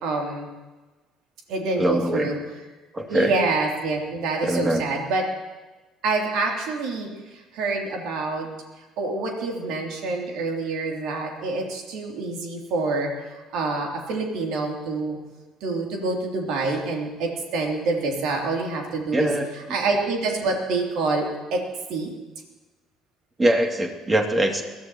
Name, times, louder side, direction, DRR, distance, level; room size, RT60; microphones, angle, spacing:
voice 1, 0.0-0.5 1.5-2.4 3.1-5.2 6.0-8.5 9.0-15.2 15.6-19.3 19.7-21.3 21.5-21.6 21.9-22.1, right 3 dB, 65° right, 0 dB, 2.9 m, -26 dB
voice 2, 1.8-2.3 2.9-3.3 4.4-4.8 19.1-19.5 23.4-24.6, right 1 dB, 25° right, 3 dB, 2.4 m, -22 dB
22.5 x 14.0 x 3.0 m, 1.2 s
hypercardioid pair, 55°, 0 cm